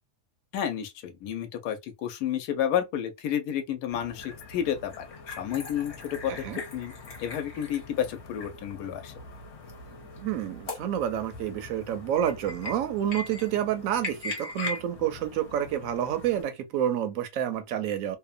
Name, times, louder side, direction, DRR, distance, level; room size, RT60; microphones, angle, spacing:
voice 1, 0.5-5.1 5.4-6.9 7.2-9.1, left 9 dB, 80° left, 1.1 m, -31 dB
sound 1, 3.9-16.4, left 3 dB, 50° left, 1.0 m, -41 dB
voice 2, 6.3-6.6 10.2-18.2, right 10 dB, 70° right, 0.9 m, -29 dB
2.9 x 2.1 x 2.3 m
omnidirectional pair, 1.7 m